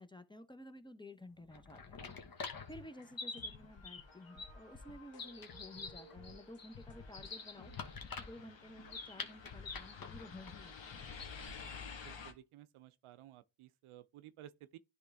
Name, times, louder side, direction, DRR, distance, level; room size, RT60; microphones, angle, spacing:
voice 1, 0.0-2.1 2.7-7.7 8.2-11.2, left 1 dB, 10° left, 0.8 m, -53 dB
sound 1, 1.4-11.6, left 4 dB, 45° left, 1.3 m, -47 dB
sound 2, 2.0-8.1, left 1 dB, 85° left, 1.6 m, -61 dB
sound 3, 2.4-12.3, left 5 dB, 65° left, 1.4 m, -54 dB
voice 2, 12.0-14.8, right 12 dB, 85° right, 0.6 m, -56 dB
10.0 x 3.4 x 3.5 m
cardioid pair, 60°, 49 cm